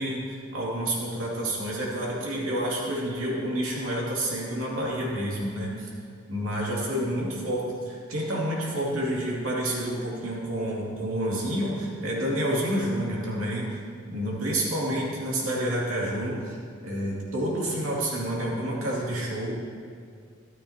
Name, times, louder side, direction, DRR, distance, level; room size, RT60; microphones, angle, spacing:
voice 1, 0.0-5.9 6.3-13.8 14.1-16.6 16.8-19.5, right 1 dB, 80° right, -5 dB, 2.5 m, -29 dB
13.0 x 12.5 x 2.9 m, 2.1 s
head